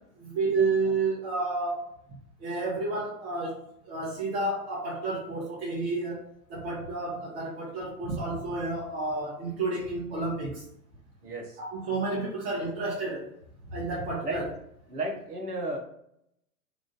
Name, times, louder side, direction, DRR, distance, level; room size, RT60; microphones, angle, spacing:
voice 1, 0.2-1.9 2.4-6.2 6.5-10.6 11.6-13.3 13.7-14.5, right 3 dB, 40° right, -5 dB, 1.1 m, -30 dB
voice 2, 11.2-11.6 14.2-14.4 14.9-15.8, right 1 dB, 75° right, 2 dB, 1.2 m, -33 dB
3.6 x 2.5 x 3.7 m, 0.72 s
figure-of-eight pair, 110°, 46 cm